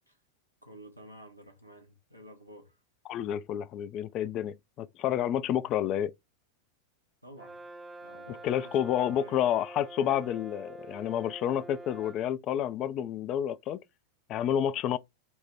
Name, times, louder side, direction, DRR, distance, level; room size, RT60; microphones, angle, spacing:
voice 1, 0.6-2.8 7.2-7.6 8.0-9.4, equal, 90° right, 1.1 m, -51 dB
voice 2, 3.1-6.1 8.4-13.8 14.3-15.0, left 10 dB, 35° left, 0.3 m, -29 dB
Brass instrument, 7.4-12.3, right 2 dB, 10° right, 0.6 m, -46 dB
4.4 x 2.1 x 4.1 m
figure-of-eight pair, 90°, 0 cm